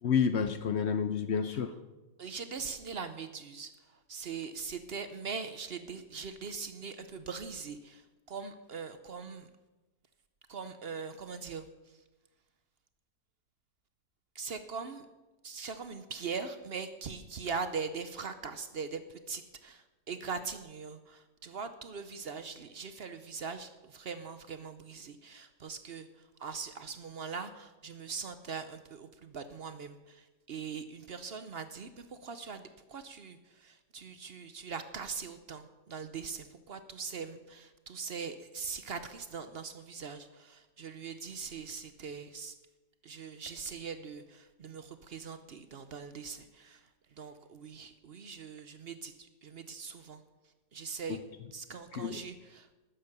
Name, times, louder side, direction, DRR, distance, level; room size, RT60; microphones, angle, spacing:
voice 1, 0.0-1.7 51.9-52.2, left 7 dB, 65° left, 11 dB, 0.6 m, -29 dB
voice 2, 2.2-9.5 10.5-12.0 14.3-15.1 15.4-42.6 43.0-50.2 50.7-51.2 51.5-52.8, right 5 dB, 55° right, 11 dB, 0.7 m, -41 dB
12.0 x 9.7 x 6.7 m, 1.1 s
omnidirectional pair, 1.8 m